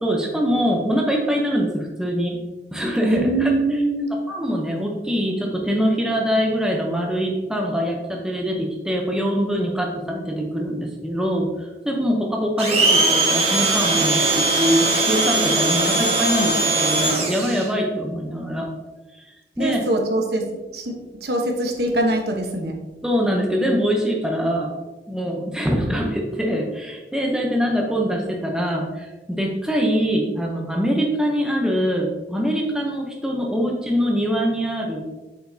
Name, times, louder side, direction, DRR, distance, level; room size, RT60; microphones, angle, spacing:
voice 1, 0.0-2.4 2.7-3.5 4.3-18.7 19.2-19.3 19.6-19.8 23.0-24.7 25.1-35.0, equal, 5° right, 0 dB, 0.7 m, -23 dB
voice 2, 3.0-4.1 19.6-22.8, right 1 dB, 60° right, 2 dB, 1.0 m, -23 dB
Domestic sounds home sounds, 12.6-17.7, right 2 dB, 35° right, 1.2 m, -20 dB
7.8 x 5.1 x 2.7 m, 1.2 s
head